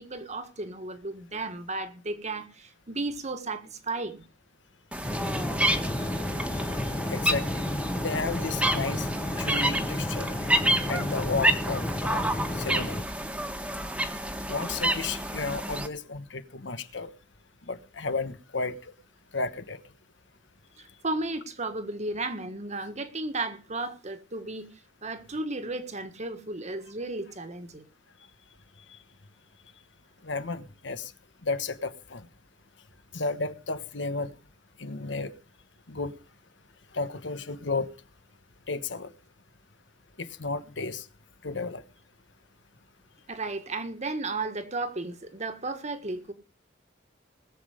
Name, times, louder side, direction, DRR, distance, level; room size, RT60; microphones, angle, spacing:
voice 1, 0.0-4.2 20.8-24.7 25.0-27.8 43.3-46.3, right 2 dB, 40° right, 1.6 m, -34 dB
sound 1, 4.9-15.9, right 1 dB, 5° right, 1.4 m, -29 dB
sound 2, 5.0-13.0, left 1 dB, 20° left, 1.1 m, -32 dB
voice 2, 6.8-7.6 8.0-9.1 9.4-10.3 10.9-12.2 12.6-13.0 14.5-17.1 17.7-18.8 19.3-19.8 30.2-31.1 31.4-32.2 33.1-34.3 34.8-35.3 35.9-36.1 36.9-37.9 38.7-39.1 40.2-41.0 41.4-41.8, left 3 dB, 75° left, 1.3 m, -33 dB
20.0 x 7.7 x 5.0 m
head